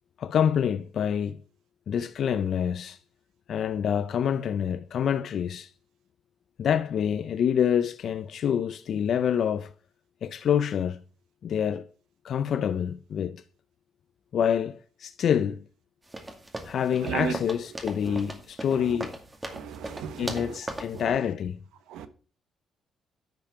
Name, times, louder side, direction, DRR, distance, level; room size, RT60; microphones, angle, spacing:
voice 1, 0.2-1.4 1.9-3.0 3.5-5.7 6.6-9.7 10.2-11.0 11.4-11.9 12.2-13.4 14.3-15.6 16.6-19.2 20.2-21.6, left 8 dB, 65° left, 0.5 m, -27 dB
sound 1, 16.1-21.0, right 1 dB, 15° right, 2.2 m, -39 dB
voice 2, 17.0-17.3 18.1-18.2 19.5-20.6 21.9-22.1, right 8 dB, 90° right, 1.0 m, -34 dB
10.5 x 5.8 x 5.7 m
cardioid pair, 90°, 0 cm